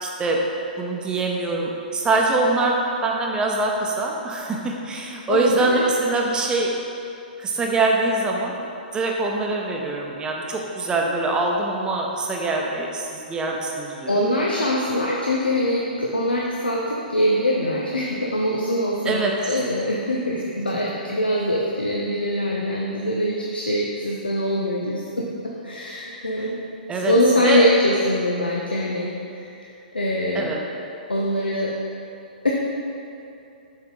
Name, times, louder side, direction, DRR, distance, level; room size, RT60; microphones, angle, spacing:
voice 1, 0.0-0.4 0.8-6.7 7.4-8.5 8.9-14.2 19.0-19.5 26.9-27.1 27.4-27.7 30.3-30.6, right 3 dB, 15° right, 0 dB, 0.8 m, -24 dB
voice 2, 5.3-5.8 14.1-26.6 26.9-30.5 31.1-31.7 32.4-32.5, left 1 dB, 90° left, -3 dB, 0.7 m, -23 dB
7.0 x 4.4 x 3.9 m, 2.8 s
figure-of-eight pair, 115°, 5 cm